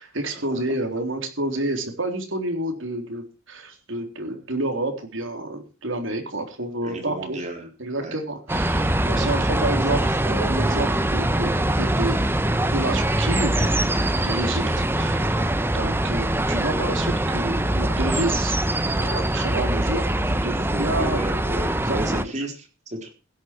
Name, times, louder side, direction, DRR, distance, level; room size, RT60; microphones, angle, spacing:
voice 1, 0.0-7.4 7.8-12.2 12.7-13.9 14.2-18.6 19.0-21.2 21.9-22.3, right 2 dB, 70° right, 5 dB, 3.8 m, -29 dB
voice 2, 6.8-7.7 8.0-8.1 8.5-8.6 21.0-23.1, right 1 dB, 35° right, 3 dB, 4.2 m, -33 dB
sound 1, 8.5-22.2, right 1 dB, 10° right, 0.9 m, -23 dB
16.0 x 11.0 x 4.6 m, 0.33 s
head